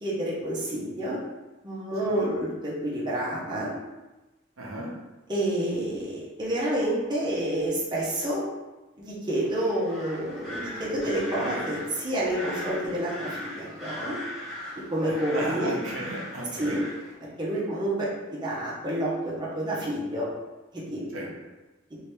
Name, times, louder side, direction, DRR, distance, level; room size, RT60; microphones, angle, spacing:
voice 1, 0.0-1.2 1.6-3.7 5.3-8.4 9.0-14.2 14.9-15.7 16.6-16.8 17.2-20.3 20.9-21.3, right 1 dB, 20° right, -7 dB, 0.8 m, -29 dB
voice 2, 4.6-4.9 15.1-16.8 17.5-17.6 21.1-21.3, right 1 dB, 85° right, -3 dB, 0.8 m, -35 dB
sound 1, 9.3-17.1, left 1 dB, ahead, 1.2 m, -39 dB
2.9 x 2.7 x 3.3 m, 1.1 s
head